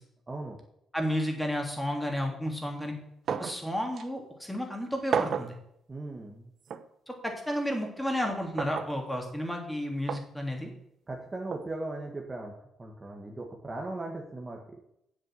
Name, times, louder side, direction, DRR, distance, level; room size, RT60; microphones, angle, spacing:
voice 1, 0.3-0.6 5.9-6.5 11.1-12.5 12.8-14.6, right 2 dB, 25° right, 0 dB, 1.7 m, -38 dB
voice 2, 0.9-2.9 3.4-5.6 7.1-10.7, equal, 5° left, 2 dB, 3.0 m, -32 dB
sound 1, 3.3-3.6 4.0-4.1 5.1-5.6 6.7-6.9 8.6-8.9 10.1-10.3 11.5-11.7, right 7 dB, 60° right, 0.8 m, -31 dB
7.9 x 7.5 x 7.7 m, 0.76 s
cardioid pair, 90°, 0 cm